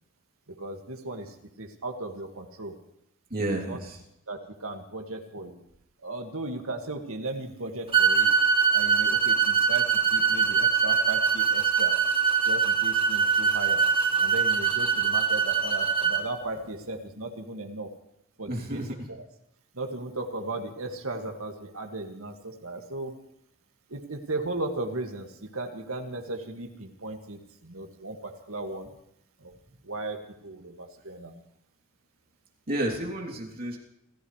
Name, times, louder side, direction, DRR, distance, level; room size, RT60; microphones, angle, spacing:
voice 1, 0.5-2.8 3.7-3.8 4.3-5.6 6.0-8.3 8.7-12.0 12.4-13.8 14.2-17.9 18.4-19.2 19.7-23.1 23.9-28.9 29.4-29.5 29.8-30.2 30.4-31.4, right 2 dB, 85° right, 3 dB, 2.1 m, -36 dB
voice 2, 3.3-4.0 18.5-19.1 32.7-33.8, right 1 dB, 45° right, -1 dB, 3.2 m, -31 dB
sound 1, 7.9-16.2, right 6 dB, 25° right, 1.6 m, -23 dB
29.5 x 15.0 x 3.3 m, 0.78 s
head